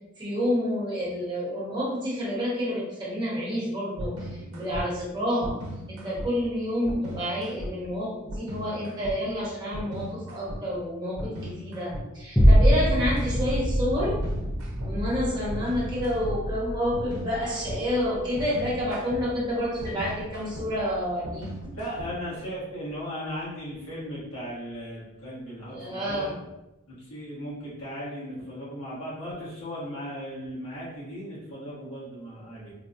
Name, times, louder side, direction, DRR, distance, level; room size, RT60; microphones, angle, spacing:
voice 1, 0.2-5.6 5.9-14.2 14.8-21.5 25.7-26.3, equal, 20° right, -7 dB, 1.0 m, -29 dB
sound 1, 4.0-4.8 5.4-6.3 6.8-7.7 8.3-9.2 9.7-10.6 11.2-12.1 12.6-13.5 14.0-22.4, equal, 90° right, 0.6 m, -38 dB
sound 2, 12.4-20.9 21.4-21.5, equal, 5° left, 0.3 m, -25 dB
voice 2, 12.7-13.0 21.6-26.3 26.9-32.7, equal, 80° left, -8 dB, 1.4 m, -37 dB
3.3 x 2.2 x 2.5 m, 0.96 s
head